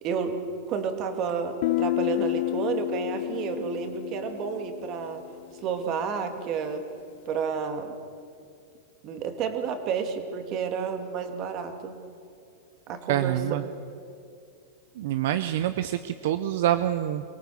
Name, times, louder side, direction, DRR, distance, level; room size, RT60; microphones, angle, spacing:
voice 1, 0.0-0.4 0.7-5.2 5.6-6.9 7.3-8.0 9.0-12.0 12.9-13.4, right 6 dB, 40° right, 6 dB, 2.3 m, -30 dB
Guitar, 1.6-5.3, left 17 dB, 60° left, 0.5 m, -30 dB
voice 2, 13.1-13.6 15.0-17.2, right 12 dB, 70° right, 11 dB, 0.7 m, -26 dB
23.5 x 18.0 x 7.2 m, 2.3 s
supercardioid pair, 135°, 0 cm